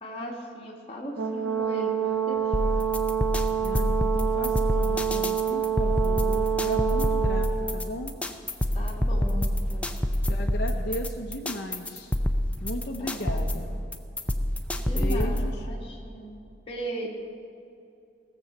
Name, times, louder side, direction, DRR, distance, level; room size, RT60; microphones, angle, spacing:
voice 1, 0.0-2.8 8.7-10.0 13.0-13.6 14.7-17.1, right 1 dB, 30° left, -2 dB, 1.8 m, -38 dB
Brass instrument, 1.2-7.5, right 9 dB, 65° right, 1.0 m, -27 dB
sound 1, 2.5-15.5, left 1 dB, 5° left, 0.5 m, -27 dB
voice 2, 3.6-8.1 10.3-12.1 12.6-13.7 14.8-15.6, left 1 dB, 55° left, 0 dB, 0.8 m, -36 dB
16.5 x 7.1 x 6.7 m, 2.6 s
head